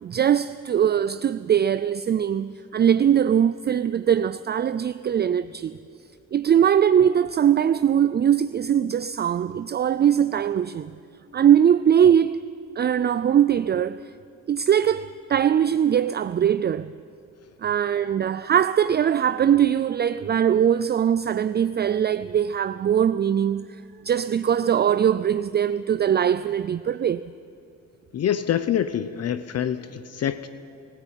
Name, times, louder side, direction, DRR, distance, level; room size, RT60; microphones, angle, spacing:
voice 1, 0.0-5.8 6.3-10.9 11.3-12.4 12.8-14.1 14.5-16.9 17.6-27.3, right 9 dB, 35° right, 0.4 m, -21 dB
voice 2, 28.1-30.5, left 9 dB, 55° left, 0.8 m, -26 dB
21.5 x 15.0 x 9.0 m
cardioid pair, 90°, 30 cm